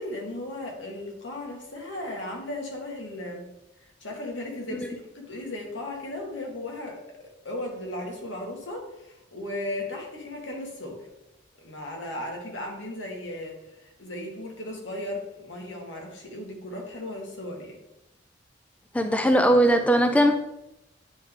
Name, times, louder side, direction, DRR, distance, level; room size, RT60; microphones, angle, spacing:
voice 1, 0.0-3.5 3.8-11.1 11.6-17.8, left 1 dB, 90° left, 0 dB, 1.5 m, -36 dB
voice 2, 18.9-20.4, equal, 5° left, 6 dB, 0.3 m, -19 dB
8.9 x 3.5 x 3.6 m, 0.89 s
head